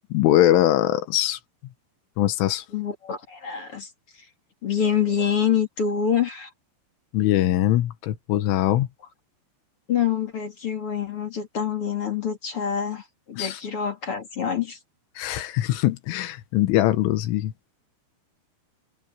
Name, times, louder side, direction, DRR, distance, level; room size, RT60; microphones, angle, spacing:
voice 1, 0.1-1.4 2.2-2.7 7.1-8.9 13.4-13.6 15.2-17.5, left 13 dB, 90° left, 3.9 m, -22 dB
voice 2, 2.7-3.9 4.6-6.5 9.9-14.8, left 8 dB, 35° left, 3.2 m, -26 dB
omnidirectional pair, 5.4 m